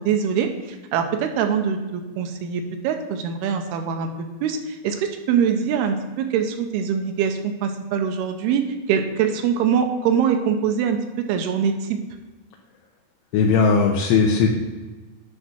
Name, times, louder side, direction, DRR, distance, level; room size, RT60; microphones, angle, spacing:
voice 1, 0.0-8.6 8.9-11.0 11.3-12.0, right 7 dB, 80° right, 5 dB, 2.5 m, -23 dB
voice 2, 13.3-14.5, left 5 dB, 80° left, 0 dB, 2.8 m, -18 dB
9.9 x 3.8 x 6.1 m, 1.2 s
omnidirectional pair, 5.1 m